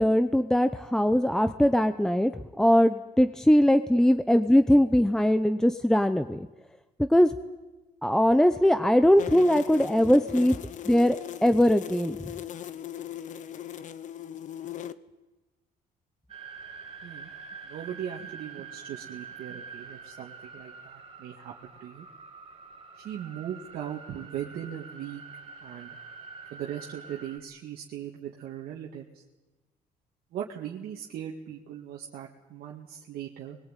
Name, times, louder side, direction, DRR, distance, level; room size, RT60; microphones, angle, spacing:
voice 1, 0.0-2.3 2.6-6.5 7.1-7.3 8.0-10.6 10.9-11.2 11.4-12.2, equal, 5° left, 10 dB, 0.8 m, -21 dB
sound 1, 9.2-14.9, left 10 dB, 55° left, 1.0 m, -39 dB
sound 2, 16.3-27.4, right 5 dB, 40° right, 3.8 m, -46 dB
voice 2, 17.6-22.1 23.0-25.2 25.6-25.9 26.5-29.2 30.3-33.6, right 10 dB, 75° right, -1 dB, 2.1 m, -39 dB
21.5 x 21.0 x 9.2 m, 1.1 s
cardioid pair, 115°, 16 cm